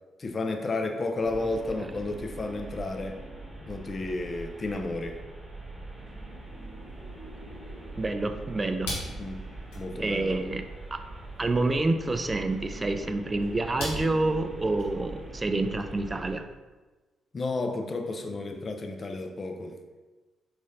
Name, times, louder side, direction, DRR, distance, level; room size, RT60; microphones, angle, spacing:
voice 1, 0.2-3.2 3.7-5.2 9.2-9.4 9.8-10.4 17.3-19.8, left 2 dB, 40° left, 5 dB, 0.4 m, -32 dB
sound 1, 1.2-16.4, right 2 dB, 10° right, 1.0 m, -42 dB
sound 2, 5.9-16.3, left 1 dB, 80° left, 0.8 m, -44 dB
voice 2, 8.0-8.9 10.0-10.6 10.9-11.0 11.4-16.4, right 2 dB, 30° right, 7 dB, 0.3 m, -28 dB
3.6 x 3.1 x 2.7 m, 1.2 s
hypercardioid pair, 40°, 0 cm